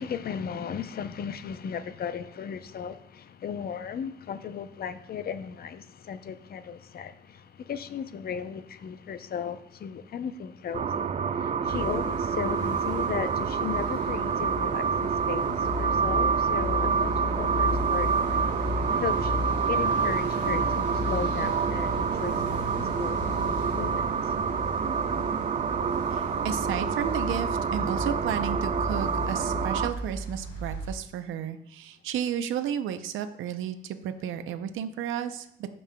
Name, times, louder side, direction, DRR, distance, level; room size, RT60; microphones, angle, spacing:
voice 1, 0.0-18.4 18.7-24.4 24.9-25.0, left 7 dB, 50° left, 0.6 m, -36 dB
sound 1, 10.7-29.9, right 6 dB, 35° right, 0.4 m, -27 dB
sound 2, 11.6-30.9, left 2 dB, 65° left, 2.6 m, -36 dB
voice 2, 26.1-35.8, right 9 dB, 85° right, 0.6 m, -33 dB
15.5 x 5.4 x 2.2 m
cardioid pair, 90°, 20 cm